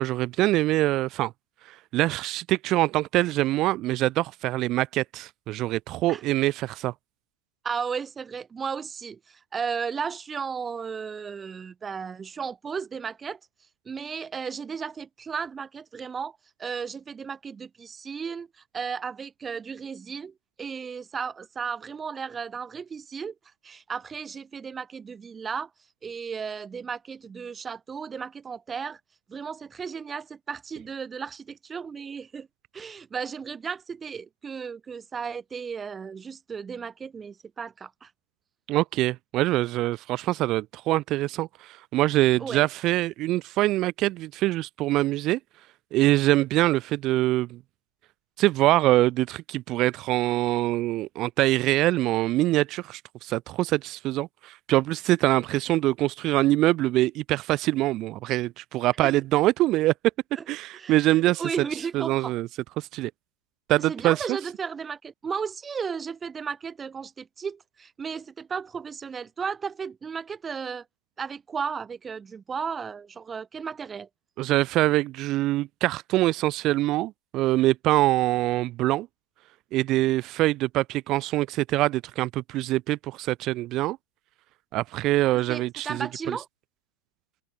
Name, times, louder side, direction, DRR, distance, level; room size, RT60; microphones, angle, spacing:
voice 1, 0.0-1.3 1.7-6.9 38.7-45.4 45.9-47.6 48.4-59.9 60.5-61.4 61.9-62.5 62.8-63.1 63.7-64.4 74.4-79.1 79.7-84.0 84.7-86.1, right 17 dB, 35° right, 0.5 m, -24 dB
voice 2, 7.6-13.4 13.9-23.4 23.6-25.7 26.0-29.0 29.3-32.5 32.7-38.1 42.4-42.7 59.0-59.1 60.4-60.5 60.7-61.0 61.4-62.3 63.9-70.9 71.2-74.1 85.3-86.5, right 6 dB, 20° right, 1.7 m, -34 dB
open air
figure-of-eight pair, 90°, 0 cm